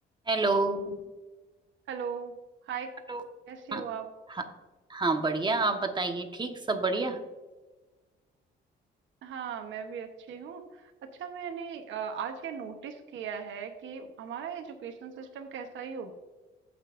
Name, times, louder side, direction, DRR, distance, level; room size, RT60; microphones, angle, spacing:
voice 1, 0.3-0.9 3.1-3.2 3.7-3.8 4.3-4.4 4.9-7.2, right 3 dB, 25° right, 5 dB, 1.3 m, -28 dB
voice 2, 1.9-2.3 2.7-2.9 3.5-4.1 9.2-10.6 11.0-16.1, right 7 dB, 75° right, 5 dB, 1.0 m, -38 dB
15.5 x 5.9 x 2.5 m, 1.2 s
cardioid pair, 90°, 20 cm